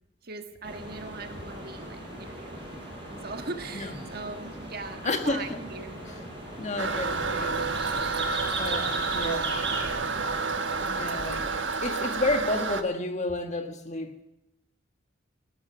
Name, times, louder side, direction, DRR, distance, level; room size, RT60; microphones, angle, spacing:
voice 1, 0.2-2.6 3.2-6.0, right 3 dB, 55° right, 6 dB, 1.5 m, -39 dB
sound 1, 0.6-11.6, right 2 dB, 25° right, 7.0 m, -38 dB
voice 2, 5.0-5.6 6.6-7.7 8.6-9.6 10.9-11.5 11.8-14.2, left 2 dB, 40° left, 7 dB, 1.6 m, -31 dB
Toilet flush, 6.8-12.8, right 4 dB, 75° right, 1.2 m, -29 dB
17.0 x 13.0 x 5.9 m, 0.91 s
head